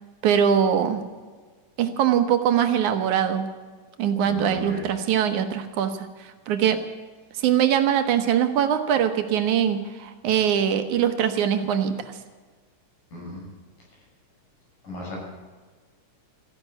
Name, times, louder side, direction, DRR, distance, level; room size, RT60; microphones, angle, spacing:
voice 1, 0.2-1.0 1.8-3.5 4.0-6.8 7.4-12.1, right 9 dB, 70° right, 8 dB, 2.4 m, -22 dB
voice 2, 4.2-4.8 13.1-13.4 14.8-15.2, left 1 dB, 75° left, -2 dB, 8.0 m, -35 dB
14.5 x 10.5 x 9.0 m, 1.4 s
omnidirectional pair, 3.7 m